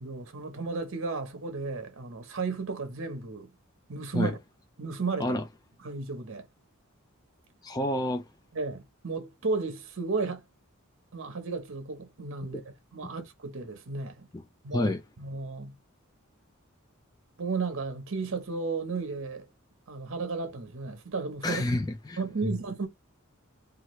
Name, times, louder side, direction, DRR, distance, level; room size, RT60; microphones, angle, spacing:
voice 1, 0.0-3.5 3.9-4.4 4.8-5.4 5.8-6.5 8.5-10.4 11.1-14.3 14.6-15.8 17.4-19.5 19.9-21.6 22.2-22.9, right 4 dB, 60° right, 0.8 m, -34 dB
voice 2, 7.6-8.2 14.7-15.0 21.4-22.5, left 1 dB, 20° left, 0.4 m, -29 dB
2.9 x 2.4 x 3.0 m
head